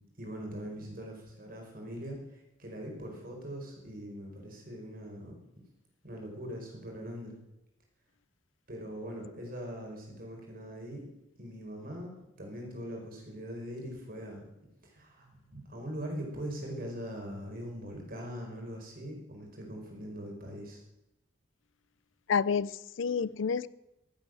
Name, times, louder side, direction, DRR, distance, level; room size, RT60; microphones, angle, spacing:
voice 1, 0.2-5.4 6.0-7.3 8.7-11.1 11.4-12.1 12.4-14.4 14.8-20.8, equal, 50° right, 1 dB, 4.9 m, -41 dB
voice 2, 22.3-23.7, left 6 dB, 70° left, 19 dB, 0.5 m, -29 dB
15.5 x 9.0 x 7.7 m, 0.88 s
head